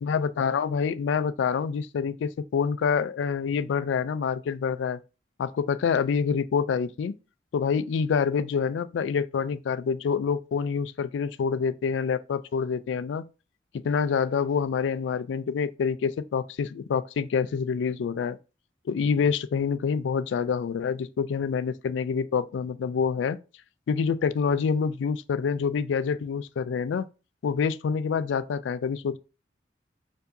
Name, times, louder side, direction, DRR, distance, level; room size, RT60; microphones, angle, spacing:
voice 1, 0.0-5.0 5.4-7.1 7.5-13.2 13.8-18.4 18.9-23.4 23.9-27.1 27.4-29.2, left 6 dB, 90° left, 0.3 m, -27 dB
4.5 x 2.6 x 2.6 m
head